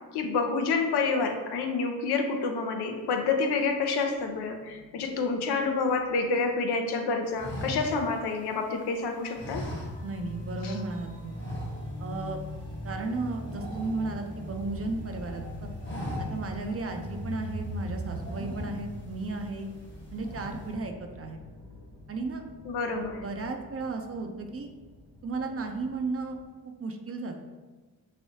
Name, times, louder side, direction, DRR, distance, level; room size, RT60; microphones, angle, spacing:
voice 1, 0.1-9.6 10.6-10.8 22.6-23.2, left 4 dB, 80° left, 4 dB, 0.5 m, -28 dB
sound 1, 3.2-3.4 4.2-18.7, equal, 45° left, 1.3 m, -45 dB
sound 2, 7.3-8.8 9.3-10.4 10.7-10.9 11.3-12.2 12.5-12.7 13.0-14.7 15.1-15.4 15.7-16.6 17.1-17.2 17.9-19.1 19.5-19.9 20.1-20.7, equal, 30° left, 1.0 m, -39 dB
voice 2, 10.0-11.4 12.0-12.4 12.8-15.7 16.2-19.7 20.1-21.4 22.1-22.4 23.2-24.7 25.2-26.4 26.8-27.4, right 3 dB, 35° right, 4 dB, 0.4 m, -34 dB
sound 3, 10.1-26.4, left 1 dB, 75° right, 1.3 m, -43 dB
3.1 x 2.6 x 2.8 m, 1.3 s
supercardioid pair, 45°, 40 cm